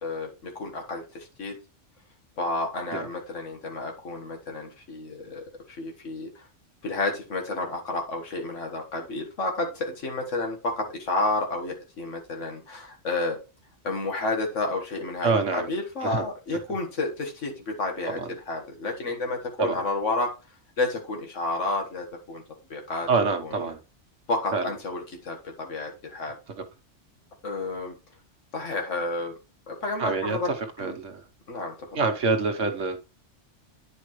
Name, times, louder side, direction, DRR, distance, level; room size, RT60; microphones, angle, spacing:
voice 1, 0.0-1.6 2.4-6.5 6.8-13.4 13.8-20.3 20.8-22.4 22.7-23.1 23.4-23.6 24.3-26.4 27.4-28.0 28.5-29.3 29.7-30.5 30.8-31.0 31.5-31.8, left 2 dB, 85° left, 1.8 m, -31 dB
voice 2, 15.2-15.7 16.0-16.2 18.1-18.3 19.6-19.8 23.1-23.8 24.5-24.7 30.0-30.4 30.8-31.2 31.9-33.0, right 4 dB, 85° right, 1.4 m, -26 dB
9.5 x 5.3 x 3.1 m
omnidirectional pair, 1.2 m